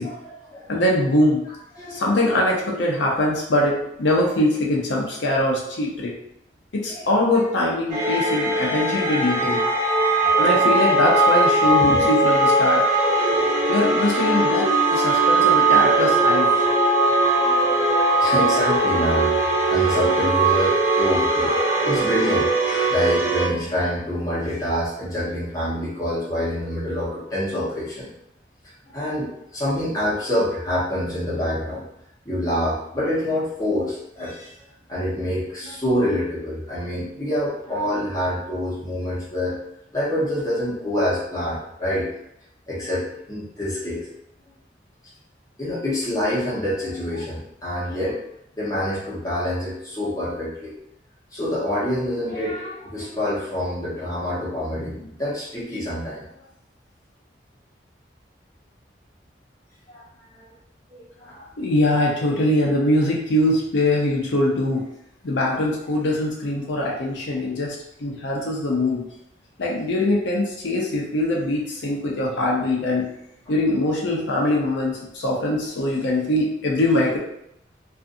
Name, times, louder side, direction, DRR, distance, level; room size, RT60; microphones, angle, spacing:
voice 1, 0.0-0.7 1.7-2.2 6.9-7.1 8.2-8.4 11.8-12.1 13.8-14.6 17.2-17.8 18.2-19.4 19.7-21.6 21.8-28.1 28.9-31.8 32.2-34.5 34.9-39.6 39.9-42.1 42.7-44.0 45.6-48.2 48.6-50.7 51.3-56.2 59.9-60.0 60.3-60.5 60.9-61.4, left 1 dB, 20° left, -8 dB, 0.9 m, -26 dB
voice 2, 0.7-1.4 1.9-6.1 6.7-9.6 10.4-12.8 13.7-16.5 61.6-64.8 65.2-69.0 69.6-73.1 73.5-77.2, left 1 dB, 85° left, -3 dB, 0.6 m, -22 dB
sound 1, 7.9-23.5, right 2 dB, 20° right, 0.7 m, -19 dB
2.5 x 2.4 x 2.5 m, 0.77 s
head